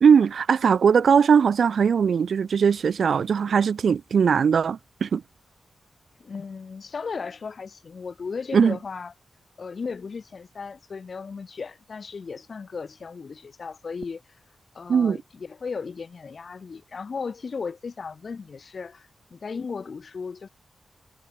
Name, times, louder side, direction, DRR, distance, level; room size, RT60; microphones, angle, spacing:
voice 1, 0.0-5.2 8.5-8.8 14.9-15.2, right 6 dB, 75° right, 0.4 m, -20 dB
voice 2, 6.2-9.1 9.6-14.2 14.7-20.5, left 5 dB, 60° left, 2.5 m, -36 dB
cardioid pair, 70°, 0 cm